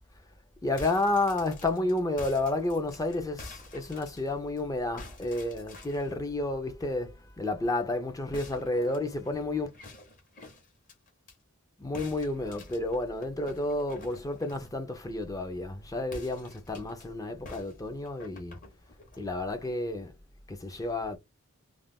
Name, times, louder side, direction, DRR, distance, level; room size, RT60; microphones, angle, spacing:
sound 1, 0.6-4.6 5.0-6.1 8.3-11.4 11.9-14.8 16.0-17.1 17.4-19.3, left 2 dB, 40° left, 0.8 m, -48 dB
voice 1, 0.6-9.7 11.8-18.6 19.2-20.2 20.5-21.2, left 2 dB, 15° left, 0.4 m, -31 dB
2.4 x 2.1 x 3.4 m
head